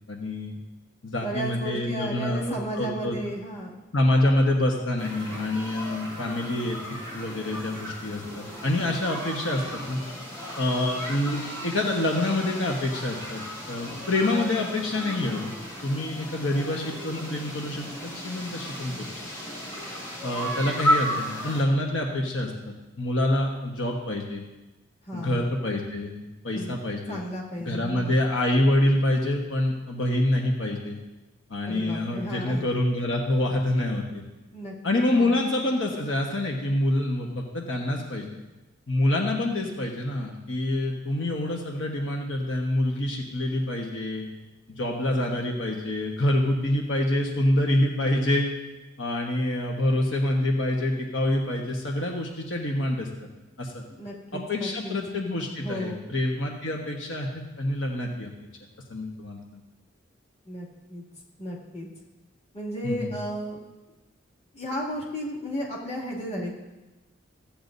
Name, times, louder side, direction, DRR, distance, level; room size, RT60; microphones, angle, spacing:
voice 1, 0.1-0.6 1.0-3.2 3.9-6.8 7.1-10.0 10.6-13.4 13.7-15.5 15.8-19.1 20.2-24.4 25.1-27.2 27.6-31.0 31.5-34.2 34.8-38.4 38.9-44.3 44.8-48.5 49.0-53.1 53.6-53.8 54.3-58.3 58.9-59.4 62.8-63.1, left 1 dB, 80° left, 0 dB, 1.3 m, -26 dB
voice 2, 1.2-3.7 25.1-25.5 26.5-28.2 31.7-32.6 34.5-34.7 35.2-35.4 53.9-55.0 55.6-56.1 60.5-61.0 61.4-61.9 62.5-63.6 64.5-66.5, equal, 35° left, -5 dB, 2.4 m, -34 dB
sound 1, 5.0-21.6, equal, 15° left, 2.4 m, -34 dB
15.5 x 8.8 x 2.7 m, 1.1 s
head